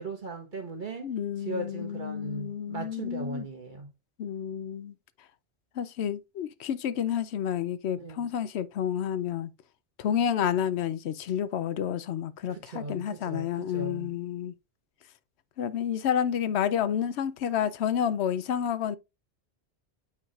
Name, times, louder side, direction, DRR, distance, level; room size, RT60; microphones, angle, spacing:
voice 1, 0.0-1.1 1.5-3.9 8.0-8.3 12.5-14.2, right 3 dB, 50° right, 1.4 m, -38 dB
voice 2, 1.0-3.5 4.2-4.9 5.8-9.5 10.0-14.5 15.6-19.0, left 9 dB, 85° left, 0.9 m, -30 dB
8.4 x 4.7 x 2.4 m
omnidirectional pair, 1.1 m